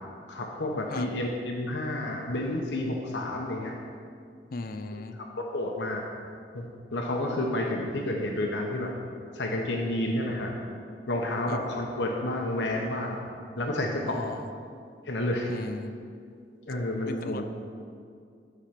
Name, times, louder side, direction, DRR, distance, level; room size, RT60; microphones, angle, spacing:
voice 1, 0.3-3.7 5.4-6.0 6.5-6.7 6.9-8.9 9.3-10.5 11.1-13.2 13.6-14.2 15.0-15.5 16.7-17.5, left 1 dB, 90° left, 0 dB, 1.0 m, -30 dB
voice 2, 4.5-5.2 11.5-11.6 14.1-14.4 15.5-16.0 17.1-17.5, left 3 dB, 55° left, 8 dB, 0.5 m, -37 dB
11.5 x 5.1 x 5.9 m, 2.3 s
head